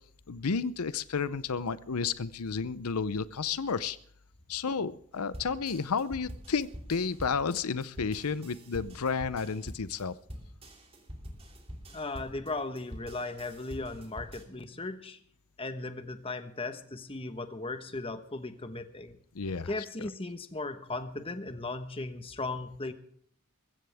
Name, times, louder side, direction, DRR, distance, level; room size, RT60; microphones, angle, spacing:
voice 1, 0.3-4.0 4.5-10.2 19.3-20.1, left 5 dB, 85° left, 16 dB, 0.7 m, -32 dB
sound 1, 5.3-14.4, equal, 25° right, 2.9 m, -45 dB
voice 2, 11.9-15.2 15.6-19.2 19.7-22.9, left 2 dB, 25° left, 9 dB, 1.2 m, -37 dB
21.0 x 15.5 x 3.5 m, 0.64 s
head